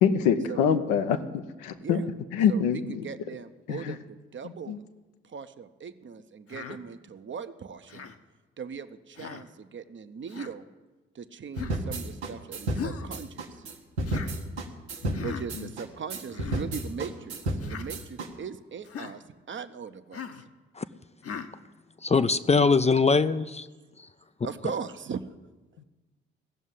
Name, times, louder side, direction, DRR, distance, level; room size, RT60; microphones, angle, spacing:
voice 1, 0.0-2.0 2.3-3.0 3.7-3.9 4.7-4.8 15.0-15.2 25.8-25.9, left 7 dB, 70° left, 8 dB, 0.9 m, -25 dB
voice 2, 2.5-4.8 5.2-8.1 8.6-10.7 11.1-13.7 15.2-20.4 24.4-25.2, right 6 dB, 35° right, 10 dB, 0.9 m, -39 dB
Human voice, 6.5-6.8 7.9-8.2 9.2-9.5 10.3-10.5 11.5-11.8 12.7-13.1 14.0-14.3 15.1-15.5 16.3-16.6 17.6-17.9 18.8-19.1 20.1-20.4 21.2-21.5, left 7 dB, 45° left, 1.1 m, -38 dB
sound 1, 11.6-18.3, right 2 dB, 85° right, 1.2 m, -32 dB
voice 3, 22.0-23.7 24.0-24.1, left 4 dB, 20° left, 12 dB, 0.5 m, -22 dB
15.5 x 7.3 x 9.7 m, 1.2 s
figure-of-eight pair, 40°, 32 cm